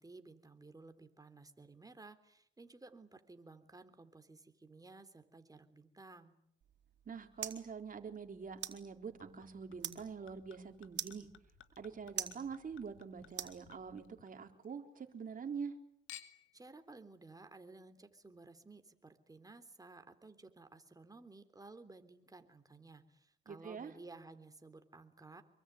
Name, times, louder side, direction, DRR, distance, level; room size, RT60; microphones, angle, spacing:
voice 1, 0.0-6.3 16.5-25.4, right 3 dB, 20° right, 9 dB, 3.5 m, -56 dB
sound 1, 6.6-14.2, right 9 dB, 60° right, 4.3 m, -48 dB
voice 2, 7.1-11.3 11.8-15.7 23.5-23.9, right 6 dB, 45° right, 5 dB, 4.2 m, -45 dB
Chink clink / Liquid, 9.2-14.7 15.0-15.7 16.1-16.6 17.3-17.4, left 10 dB, 80° left, 2.2 m, -59 dB
26.5 x 23.5 x 9.5 m, 0.70 s
cardioid pair, 90°, 20 cm